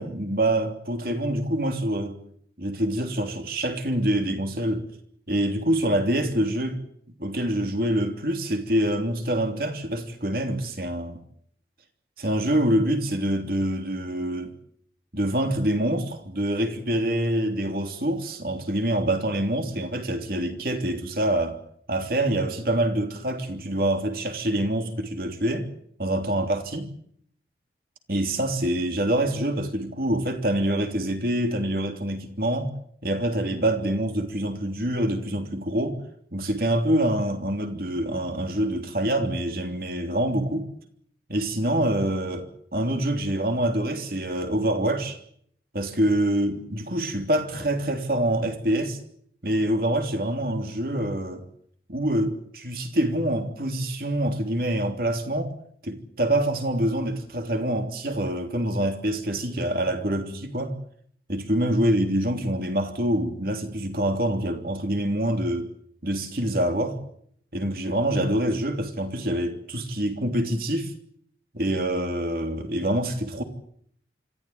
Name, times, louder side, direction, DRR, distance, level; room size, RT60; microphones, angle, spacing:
voice 1, 0.0-2.2 2.6-4.9 5.3-6.8 7.2-11.2 12.2-14.5 15.1-21.6 21.9-25.7 26.0-26.9 28.1-32.7 33.0-36.0 36.3-40.7 41.3-45.2 45.7-49.0 49.4-51.4 51.9-55.6 55.8-60.7 61.3-65.7 66.0-67.0 67.5-70.9 71.5-73.4, right 1 dB, 55° right, 3.3 m, -26 dB
26.0 x 15.0 x 9.5 m
head